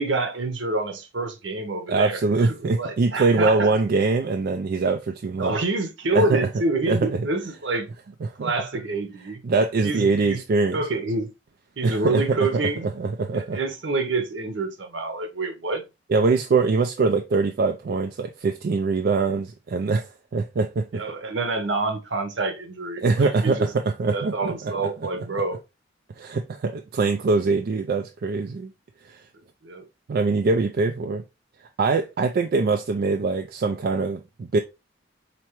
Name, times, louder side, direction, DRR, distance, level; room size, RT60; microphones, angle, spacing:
voice 1, 0.0-3.7 5.4-7.9 8.4-9.4 9.8-10.4 10.7-11.3 11.8-12.9 13.3-15.8 20.9-23.7 24.1-25.6 29.6-29.8, right 3 dB, 70° right, 0.9 m, -27 dB
voice 2, 1.9-5.5 6.1-6.4 6.9-7.3 8.2-8.5 9.4-10.8 11.8-13.6 16.1-21.0 23.0-24.7 26.2-28.7 29.0-29.2 30.1-31.2 31.8-34.6, right 3 dB, 55° right, 0.4 m, -23 dB
4.4 x 2.9 x 2.9 m
head